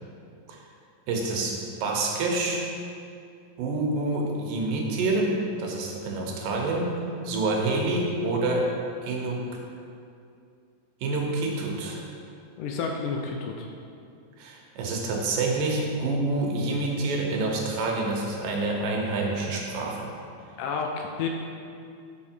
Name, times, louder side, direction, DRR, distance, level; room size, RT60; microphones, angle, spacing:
voice 1, 1.1-2.6 3.6-5.3 5.6-6.9 7.2-8.7 9.0-9.4 11.0-12.0 14.4-20.1, right 2 dB, 80° right, 0 dB, 2.5 m, -27 dB
voice 2, 12.6-13.7 20.6-21.3, left 5 dB, 80° left, 2 dB, 2.0 m, -30 dB
6.3 x 5.7 x 4.4 m, 2.4 s
omnidirectional pair, 4.0 m